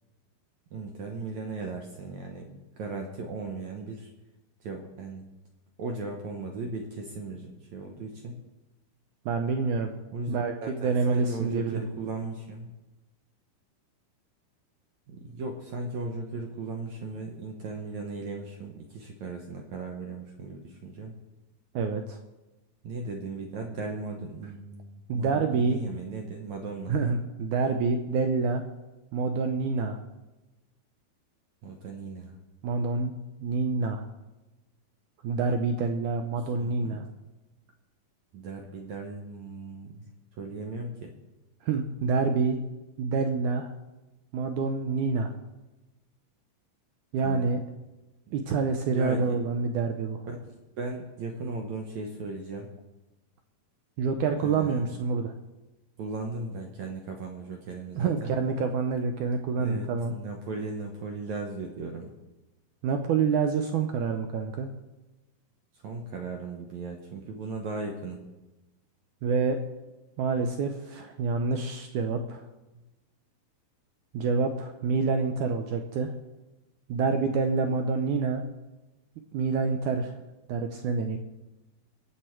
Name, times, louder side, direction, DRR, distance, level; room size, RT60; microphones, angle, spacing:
voice 1, 0.7-2.5 2.8-4.1 4.6-5.2 5.8-8.4 10.1-12.7 15.1-21.1 22.8-27.0 31.6-32.4 36.6-37.0 38.3-41.1 47.2-47.5 48.3-48.4 48.8-49.4 50.3-52.7 54.4-54.8 56.0-58.3 59.6-62.1 65.7-68.2, right 3 dB, 70° right, 2 dB, 1.9 m, -37 dB
voice 2, 9.2-9.9 10.3-11.8 21.7-22.2 25.1-25.8 26.9-28.6 29.1-30.0 32.6-33.1 33.4-34.1 35.2-37.0 41.6-42.6 43.0-43.7 44.3-45.3 47.1-47.6 48.3-50.2 54.0-55.3 58.0-60.1 62.8-64.7 69.2-69.6 70.2-72.4 74.1-76.1 76.9-78.4 79.3-80.2 80.5-81.2, right 4 dB, 85° right, 6 dB, 1.7 m, -27 dB
22.5 x 8.2 x 4.5 m, 1.1 s
omnidirectional pair, 4.4 m